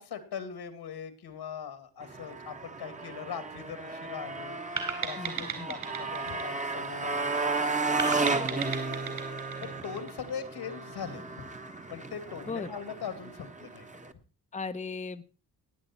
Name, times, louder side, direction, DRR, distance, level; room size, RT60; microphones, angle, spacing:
voice 1, 0.0-4.6 5.0-9.1 9.6-11.4 11.9-14.0, left 7 dB, 75° left, 10 dB, 2.4 m, -41 dB
Motorcycle, 2.0-14.1, right 3 dB, 20° right, 1.2 m, -34 dB
sound 1, 4.8-7.3 8.0-10.5, right 6 dB, 55° right, 4.0 m, -36 dB
voice 2, 5.2-5.7 12.5-12.7 14.5-15.2, left 4 dB, 20° left, 8 dB, 0.8 m, -37 dB
18.0 x 8.9 x 4.5 m, 0.36 s
cardioid pair, 95°, 39 cm